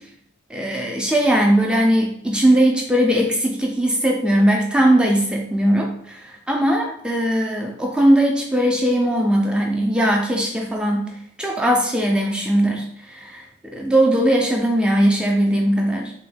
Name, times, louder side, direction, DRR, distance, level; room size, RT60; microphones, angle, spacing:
voice 1, 0.5-11.0 11.4-16.1, right 1 dB, 5° right, 0 dB, 0.4 m, -19 dB
3.5 x 2.2 x 3.4 m, 0.70 s
head